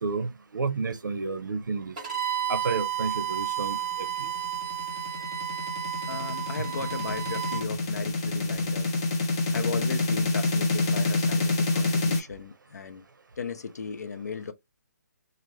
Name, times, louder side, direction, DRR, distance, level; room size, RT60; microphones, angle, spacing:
voice 1, 0.0-1.9 2.5-4.1, right 4 dB, 80° right, 0.8 m, -31 dB
Bowed string instrument, 2.0-7.6, right 10 dB, 25° right, 1.4 m, -32 dB
sound 1, 4.1-12.2, left 2 dB, 15° left, 0.5 m, -27 dB
voice 2, 6.1-8.9 9.5-13.0 13.4-14.5, left 5 dB, 60° left, 0.7 m, -36 dB
2.8 x 2.5 x 3.3 m
hypercardioid pair, 175°, 10 cm